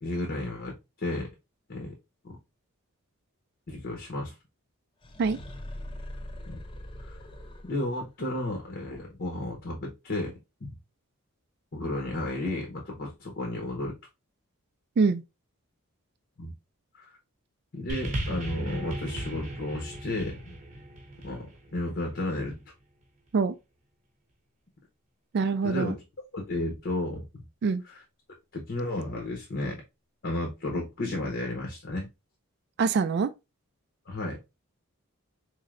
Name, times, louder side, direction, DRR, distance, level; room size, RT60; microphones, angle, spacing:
voice 1, 0.0-1.3 1.7-1.9 3.7-4.4 6.5-6.6 7.0-7.2 7.7-10.7 11.7-13.9 16.4-16.5 16.9-17.1 17.7-20.6 21.2-22.5 25.6-26.0 26.3-27.3 28.5-29.8 30.2-32.1 34.1-34.4, left 1 dB, 50° left, 0.8 m, -33 dB
sound 1, 5.0-8.0, left 1 dB, 25° left, 0.5 m, -41 dB
sound 2, 17.9-22.4 23.3-23.4, right 1 dB, 35° right, 0.8 m, -36 dB
voice 2, 25.3-26.0 27.6-27.8 32.8-33.3, right 4 dB, 50° right, 0.3 m, -24 dB
3.9 x 3.2 x 2.5 m
head